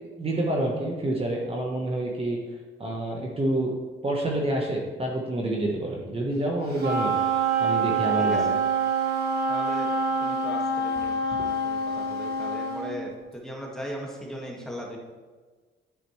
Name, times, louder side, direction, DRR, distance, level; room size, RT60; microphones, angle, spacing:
voice 1, 0.2-2.4 2.8-3.7 4.0-7.2 7.6-8.4, right 1 dB, 30° right, -1 dB, 1.2 m, -28 dB
Wind instrument woodwind instrument, 6.8-12.9, right 3 dB, 55° right, 2.0 m, -26 dB
voice 2, 8.2-8.6 9.5-9.9 10.2-15.0, equal, 5° left, -2 dB, 1.8 m, -38 dB
10.5 x 5.0 x 3.2 m, 1.4 s
cardioid pair, 90°, 20 cm